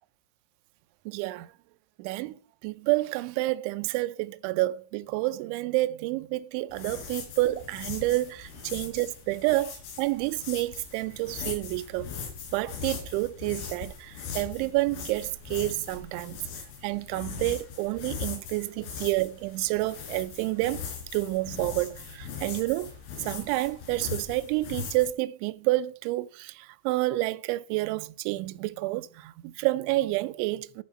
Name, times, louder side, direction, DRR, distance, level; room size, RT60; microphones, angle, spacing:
voice 1, 1.1-1.5 2.0-12.1 12.5-16.4 16.8-20.9 21.1-22.9 23.2-30.8, right 19 dB, 85° right, 2.6 m, -29 dB
sound 1, 6.7-25.1, left 6 dB, 80° left, 5.1 m, -40 dB
10.5 x 8.7 x 4.1 m
omnidirectional pair, 6.0 m